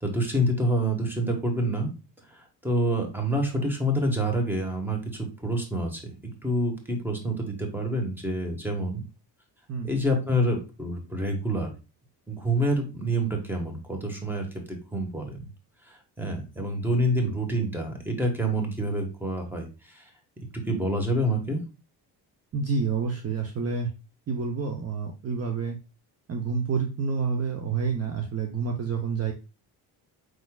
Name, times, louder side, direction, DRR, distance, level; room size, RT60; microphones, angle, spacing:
voice 1, 0.0-1.9 2.6-5.0 5.4-6.1 6.4-9.0 9.8-11.7 12.3-15.4 16.2-19.7 19.9-20.0 20.5-21.6, right 1 dB, 5° right, 2 dB, 1.3 m, -27 dB
voice 2, 22.5-23.9 24.3-25.8 26.3-29.3, right 5 dB, 35° right, 3 dB, 0.7 m, -28 dB
4.7 x 4.2 x 2.3 m, 0.30 s
cardioid pair, 110°, 42 cm